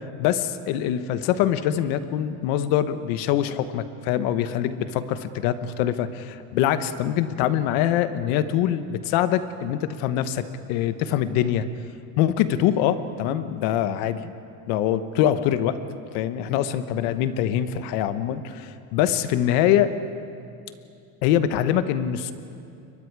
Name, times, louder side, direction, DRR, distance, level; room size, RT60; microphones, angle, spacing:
voice 1, 0.2-11.7 12.2-14.3 14.7-15.8 16.1-19.9 21.2-22.3, left 11 dB, 85° left, 11 dB, 1.2 m, -24 dB
30.0 x 23.0 x 4.8 m, 2.5 s
cardioid pair, 130°, 37 cm